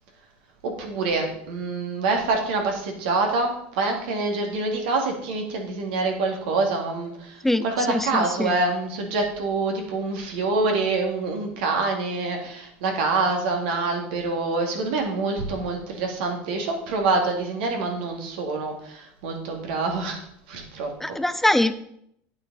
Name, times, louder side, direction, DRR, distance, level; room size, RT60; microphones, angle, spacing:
voice 1, 0.6-21.2, right 3 dB, 85° right, 2 dB, 2.4 m, -26 dB
voice 2, 7.4-8.6 21.0-21.7, left 1 dB, 5° left, 12 dB, 0.4 m, -23 dB
9.1 x 8.8 x 4.1 m, 0.72 s
supercardioid pair, 135°, 5 cm